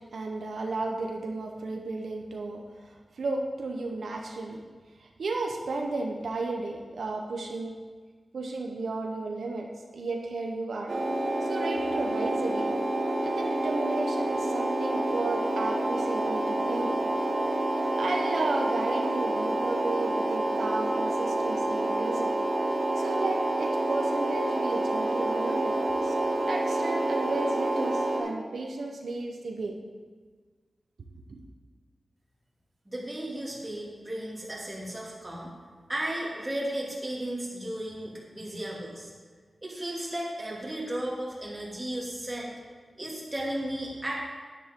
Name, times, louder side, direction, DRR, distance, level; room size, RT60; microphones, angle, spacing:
voice 1, 0.1-4.6 5.0-7.8 8.3-9.7 9.9-10.9 11.4-12.8 13.2-17.1 17.7-22.4 22.8-25.8 26.0-29.8 31.3-31.4, right 3 dB, 85° right, 1 dB, 1.0 m, -33 dB
sound 1, 10.9-28.2, right 1 dB, 60° right, 1.7 m, -28 dB
voice 2, 32.8-35.5 35.9-39.1 39.6-42.5 43.0-44.1, right 1 dB, 20° right, -4 dB, 2.7 m, -34 dB
10.5 x 10.0 x 3.8 m, 1.5 s
wide cardioid pair, 105°, 0 cm